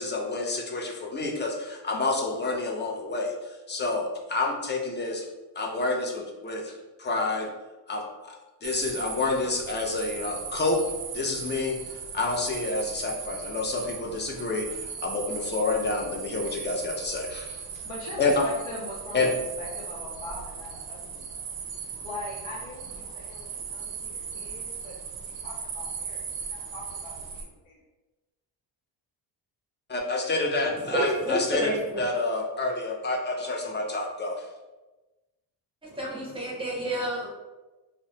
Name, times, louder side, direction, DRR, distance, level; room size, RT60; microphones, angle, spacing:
voice 1, 0.0-5.3 5.6-6.7 7.0-7.5 7.9-10.8 11.1-11.8 12.1-17.6 18.2-18.4 19.1-19.3 29.9-31.7 32.0-34.4, left 3 dB, 25° left, 0 dB, 0.4 m, -28 dB
sound 1, 8.6-27.4, right 6 dB, 55° right, 0.5 m, -38 dB
voice 2, 17.7-21.6 22.0-26.2 26.5-27.8, left 1 dB, 75° left, -5 dB, 0.7 m, -42 dB
voice 3, 30.7-32.0 35.8-37.3, right 1 dB, 10° right, -4 dB, 0.7 m, -29 dB
2.9 x 2.1 x 2.7 m, 1.1 s
cardioid pair, 105°, 45 cm